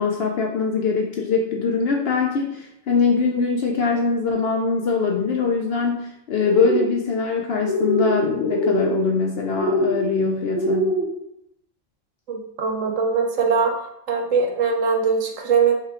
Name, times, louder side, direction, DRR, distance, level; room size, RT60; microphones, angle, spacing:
voice 1, 0.0-11.0, left 5 dB, 60° left, 1 dB, 0.7 m, -22 dB
sound 1, 6.4-6.9 7.6-8.1 8.4-8.9 9.6-10.0 10.5-11.1, equal, 10° right, 0.9 m, -22 dB
voice 2, 12.3-13.7 14.1-15.7, right 5 dB, 70° right, 1 dB, 1.1 m, -21 dB
5.4 x 2.2 x 3.6 m, 0.77 s
omnidirectional pair, 1.4 m